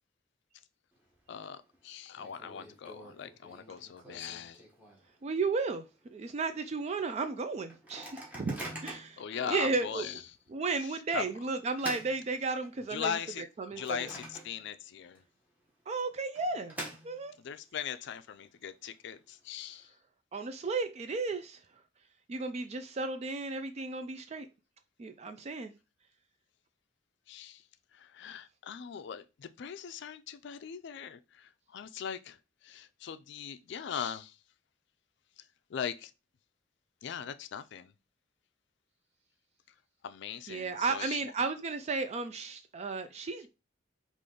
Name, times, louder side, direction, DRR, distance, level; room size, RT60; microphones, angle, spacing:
Microwave oven, 0.9-1.4 1.7-1.8 2.2-5.2 5.7-5.8 6.0-6.4 6.9-7.0 7.7-9.2 9.8-10.0 11.1-12.9 13.4-14.9 15.2-15.3 16.1-17.5, right 1 dB, 10° right, 1.3 m, -46 dB
voice 1, 1.3-4.6 9.2-10.2 10.8-11.2 12.9-13.4 13.8-15.2 17.4-19.9 27.3-27.6 27.9-32.4 32.6-34.4 35.7-36.1 37.0-37.9 40.0-41.2, left 8 dB, 65° left, 0.4 m, -40 dB
voice 2, 5.2-10.1 10.5-13.2 13.6-14.1 15.9-16.8 17.0-17.3 20.3-21.6 22.3-24.5 25.0-25.7 40.5-43.5, right 4 dB, 35° right, 0.4 m, -34 dB
5.0 x 2.5 x 3.8 m
head